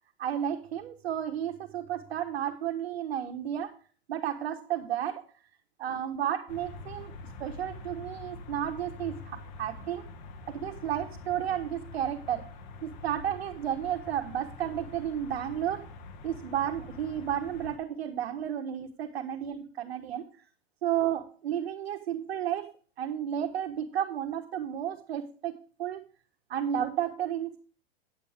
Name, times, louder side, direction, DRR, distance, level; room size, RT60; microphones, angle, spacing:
voice 1, 0.2-3.7 4.1-5.2 5.8-10.0 10.5-12.5 12.8-15.9 16.2-20.3 20.8-22.7 23.0-26.0 26.5-27.6, right 10 dB, 85° right, 4 dB, 1.4 m, -32 dB
sound 1, 6.5-17.8, left 3 dB, 50° left, 2.0 m, -45 dB
10.0 x 8.7 x 3.5 m, 0.39 s
hypercardioid pair, 140°, 30 cm